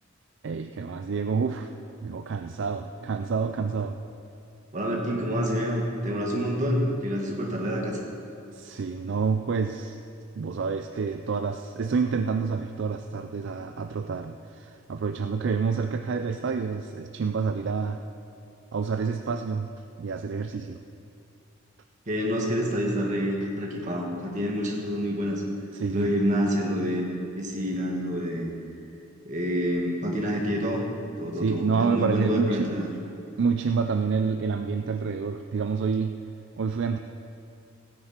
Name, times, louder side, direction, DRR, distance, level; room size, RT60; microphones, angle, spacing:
voice 1, 0.4-1.7 2.0-4.0 8.5-10.0 10.4-18.0 18.7-19.7 20.0-20.8 25.7-26.1 31.3-32.8 33.4-36.2 36.6-37.0, right 5 dB, 60° right, 7 dB, 0.4 m, -28 dB
voice 2, 4.7-8.0 22.1-25.4 25.9-27.1 27.3-28.5 29.3-30.8 31.2-32.9, equal, 40° right, -1 dB, 2.0 m, -27 dB
16.5 x 9.7 x 4.5 m, 2.6 s
head